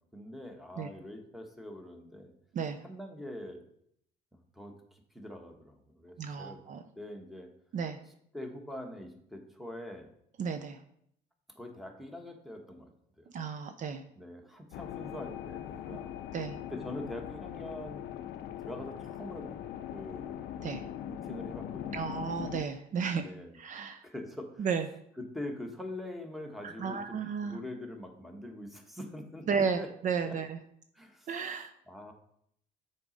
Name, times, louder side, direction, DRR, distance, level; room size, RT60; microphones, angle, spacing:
voice 1, 0.0-2.3 2.8-3.6 4.5-6.6 7.0-7.5 8.3-10.1 11.5-12.9 13.2-13.3 14.1-16.1 16.7-18.1 18.6-19.6 19.9-20.4 21.1-22.0 23.2-24.7 25.2-29.5 29.7-29.9 30.3-30.4 30.9-31.3 31.9-32.1, left 1 dB, ahead, 3 dB, 1.2 m, -44 dB
voice 2, 6.2-6.8 7.7-8.0 10.4-10.8 13.3-14.0 16.3-16.6 20.6-20.8 21.9-23.3 23.5-24.0 24.6-24.9 26.6-27.6 29.5-30.6 31.3-31.7, right 6 dB, 50° right, 8 dB, 0.5 m, -33 dB
sound 1, 14.7-22.6, left 10 dB, 75° left, 0.4 m, -41 dB
6.9 x 4.1 x 5.1 m, 0.69 s
cardioid pair, 110°, 17 cm